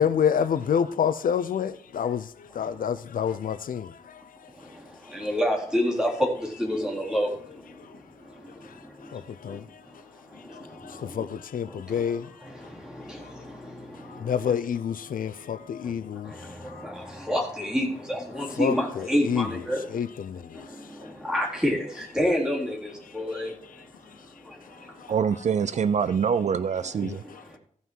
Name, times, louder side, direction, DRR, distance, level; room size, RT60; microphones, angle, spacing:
voice 1, 0.0-5.3 7.8-13.7 13.9-17.1 18.3-21.2 23.0-25.1 27.0-27.6, left 8 dB, 90° left, 0.6 m, -31 dB
voice 2, 5.1-6.1 6.6-7.3 16.8-19.8 21.2-23.5, equal, 5° right, 3.7 m, -27 dB
voice 3, 25.1-27.2, right 7 dB, 55° right, 0.4 m, -25 dB
15.0 x 5.7 x 4.7 m
wide cardioid pair, 125°, 14 cm